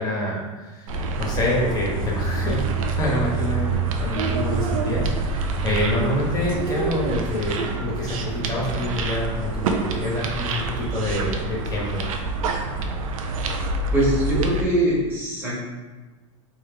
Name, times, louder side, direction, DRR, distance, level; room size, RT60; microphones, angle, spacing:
voice 1, 0.0-12.1, left 1 dB, 20° left, -5 dB, 1.3 m, -27 dB
sound 1, 0.9-14.6, right 3 dB, 85° right, 0.5 m, -26 dB
voice 2, 13.9-15.6, right 1 dB, 15° right, -7 dB, 1.5 m, -22 dB
3.5 x 3.1 x 3.4 m, 1.3 s
supercardioid pair, 130°, 17 cm